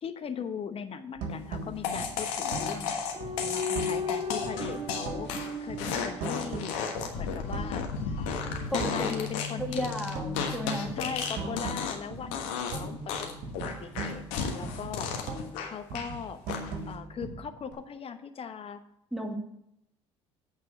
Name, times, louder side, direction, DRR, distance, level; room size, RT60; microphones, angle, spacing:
voice 1, 0.0-3.0 3.4-5.3 5.6-6.8 7.1-7.9 8.2-9.9 11.0-15.1 15.6-16.4 16.9-18.8, left 6 dB, 40° left, 10 dB, 1.0 m, -39 dB
sound 1, 1.2-4.1 4.4-5.4 5.7-7.9 8.3-9.3 9.6-13.2 13.4-15.6 15.9-17.7, right 3 dB, 60° right, 2.3 m, -39 dB
sound 2, 1.8-12.1 12.3-12.8 13.1-16.1 16.5-16.9, left 6 dB, 75° left, 1.4 m, -33 dB
sound 3, 3.1-6.8 8.3-12.0 12.8-14.0, left 3 dB, 45° right, 3.5 m, -37 dB
voice 2, 8.7-9.1 9.6-10.9 19.1-19.3, right 1 dB, ahead, 1 dB, 2.2 m, -34 dB
8.5 x 4.7 x 7.1 m, 0.79 s
hypercardioid pair, 60°, 16 cm